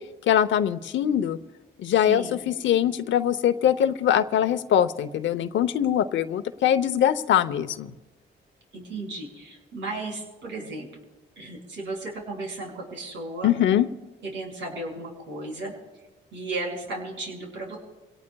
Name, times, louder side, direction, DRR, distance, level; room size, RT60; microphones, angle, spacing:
voice 1, 0.3-1.4 1.8-7.9 13.4-13.9, left 10 dB, 70° left, 12 dB, 0.8 m, -22 dB
voice 2, 1.9-2.4 8.7-10.9 11.4-13.5 14.2-15.7 16.3-17.8, right 2 dB, 70° right, -1 dB, 6.0 m, -35 dB
28.5 x 18.0 x 2.3 m, 1.1 s
cardioid pair, 90°, 20 cm